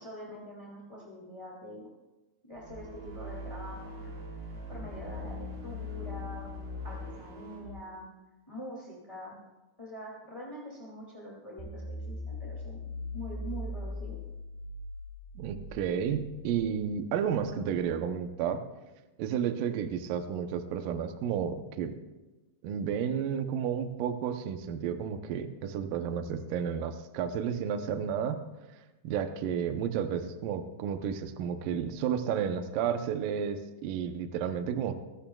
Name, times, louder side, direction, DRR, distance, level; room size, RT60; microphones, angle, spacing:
voice 1, 0.0-1.8 2.4-6.5 6.8-8.1 8.5-9.4 9.8-14.2, equal, 15° left, -4 dB, 1.1 m, -45 dB
sound 1, 2.5-7.8, left 2 dB, 35° right, 3.4 m, -41 dB
sound 2, 11.6-17.8, left 1 dB, 65° right, 6.4 m, -41 dB
voice 2, 15.4-18.6 19.2-22.0 22.6-28.4 29.0-34.9, right 8 dB, 85° right, 7 dB, 1.9 m, -32 dB
25.0 x 14.5 x 2.3 m, 1.1 s
omnidirectional pair, 5.1 m